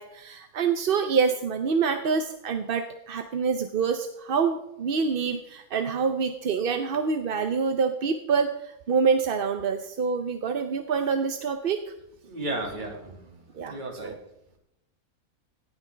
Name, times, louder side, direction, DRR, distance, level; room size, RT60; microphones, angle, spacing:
voice 1, 0.0-11.8 13.5-13.8 14.0-14.2, right 5 dB, 50° right, 7 dB, 0.7 m, -26 dB
voice 2, 12.3-14.2, right 1 dB, 35° right, 1 dB, 2.3 m, -35 dB
17.0 x 9.5 x 3.4 m, 0.85 s
omnidirectional pair, 1.5 m